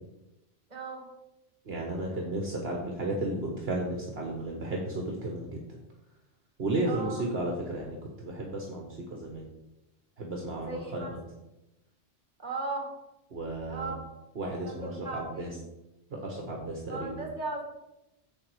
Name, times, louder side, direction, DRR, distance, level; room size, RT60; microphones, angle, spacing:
voice 1, 0.7-1.0 6.9-7.2 10.6-11.1 12.4-12.9 13.7-14.0 14.6-15.6 16.9-17.6, right 3 dB, 40° right, 1 dB, 2.1 m, -37 dB
voice 2, 1.6-5.6 6.6-9.5 10.2-11.2 13.3-13.9 14.3-15.5 16.1-17.1, right 2 dB, 60° right, 0 dB, 1.5 m, -33 dB
7.4 x 7.1 x 4.8 m, 0.94 s
omnidirectional pair, 1.2 m